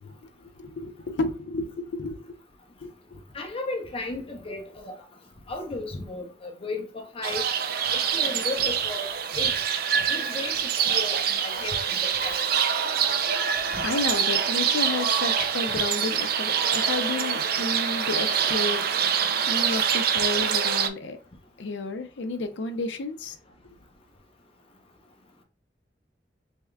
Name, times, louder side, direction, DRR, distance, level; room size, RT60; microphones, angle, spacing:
voice 1, 0.0-2.4 2.8-3.2 13.3-21.2 21.6-23.4, left 3 dB, 85° left, 0.5 m, -32 dB
voice 2, 3.3-5.0 5.5-7.5 7.9-9.6 10.1-12.5 13.7-13.8 15.7-15.8, left 2 dB, 35° left, 0.7 m, -35 dB
sound 1, 7.2-20.9, right 7 dB, 55° right, 0.4 m, -25 dB
3.5 x 3.4 x 2.2 m
head